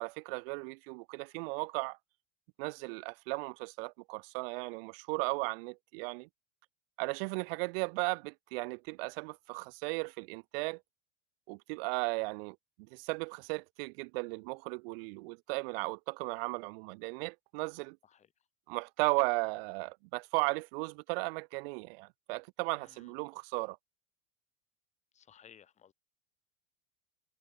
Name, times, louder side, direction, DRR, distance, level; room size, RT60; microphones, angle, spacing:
voice 1, 0.0-2.0 2.6-6.3 7.0-10.8 11.5-12.6 12.9-18.0 18.7-23.8, right 29 dB, 55° right, 0.5 m, -36 dB
voice 2, 22.8-23.2 25.1-25.9, left 9 dB, 20° left, 1.0 m, -59 dB
supercardioid pair, 145°, 35 cm